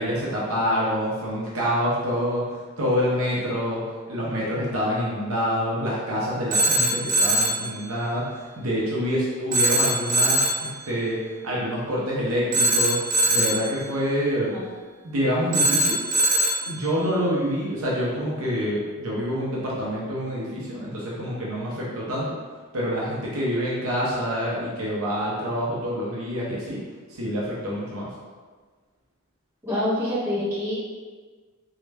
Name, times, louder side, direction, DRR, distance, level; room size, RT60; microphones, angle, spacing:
voice 1, 0.0-2.5 2.8-13.0 13.3-14.5 15.0-16.0 16.7-22.4 22.7-26.8 27.1-28.1, equal, 70° right, -6 dB, 0.7 m, -26 dB
Telephone, 6.5-7.7 9.5-10.7 12.5-13.7 15.5-16.7, right 1 dB, 35° right, 0.4 m, -21 dB
voice 2, 29.6-30.7, left 1 dB, 10° right, -14 dB, 1.5 m, -26 dB
3.1 x 2.3 x 3.3 m, 1.4 s
head